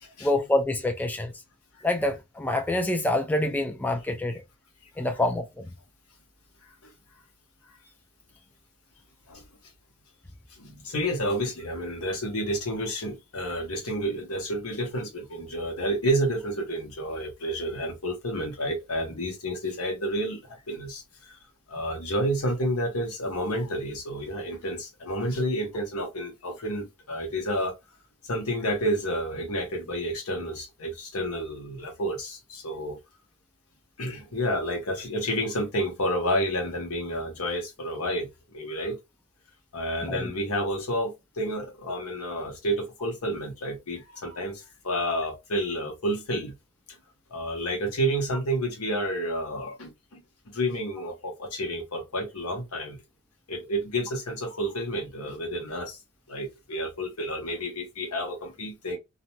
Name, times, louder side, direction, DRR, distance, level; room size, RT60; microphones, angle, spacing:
voice 1, 0.2-1.3 1.8-4.4 5.0-5.7 40.0-40.3, left 1 dB, 10° left, 0.3 m, -26 dB
voice 2, 10.5-21.4 21.7-27.7 28.3-33.0 34.0-39.0 39.7-46.5 47.3-50.2 50.5-53.0 53.5-56.0 56.3-59.0, equal, 80° left, 1.0 m, -30 dB
2.5 x 2.1 x 2.9 m
head